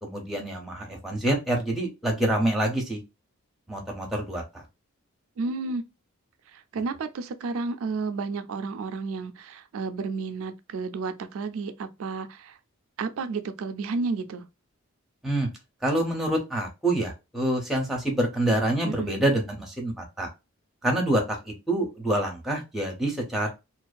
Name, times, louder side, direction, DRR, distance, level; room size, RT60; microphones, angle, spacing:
voice 1, 0.0-3.0 3.7-4.4 15.2-15.5 15.8-20.3 20.8-23.5, right 1 dB, ahead, 0.5 m, -26 dB
voice 2, 5.4-5.8 6.5-12.6 13.0-14.4 18.8-19.2, right 4 dB, 70° right, 0.4 m, -32 dB
2.5 x 2.3 x 2.2 m
head